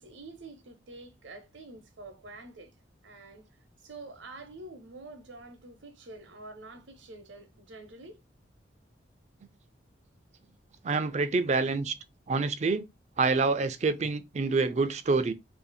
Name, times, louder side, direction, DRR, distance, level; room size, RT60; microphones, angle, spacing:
voice 1, 0.0-2.7 3.0-3.5 3.8-8.2, right 2 dB, 80° right, 0.8 m, -47 dB
voice 2, 10.8-12.0 12.3-12.9 13.2-15.3, right 4 dB, 35° right, 0.3 m, -27 dB
2.6 x 2.4 x 4.0 m
head